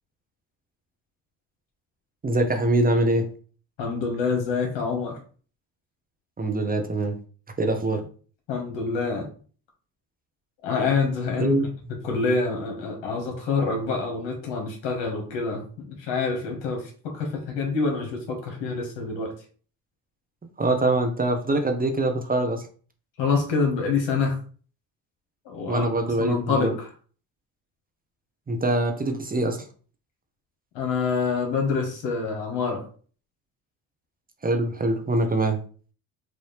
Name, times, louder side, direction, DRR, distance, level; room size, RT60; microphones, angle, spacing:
voice 1, 2.2-3.3 6.4-7.2 7.6-8.0 11.4-11.6 20.6-22.6 25.7-26.8 28.5-29.6 34.4-35.6, right 2 dB, 20° right, 5 dB, 0.7 m, -23 dB
voice 2, 3.8-5.2 8.5-9.3 10.6-11.6 12.0-19.3 23.2-24.4 25.4-25.8 26.2-26.9 30.7-32.8, left 4 dB, 75° left, 2 dB, 1.7 m, -26 dB
4.7 x 2.6 x 3.3 m, 0.41 s
supercardioid pair, 80°, 43 cm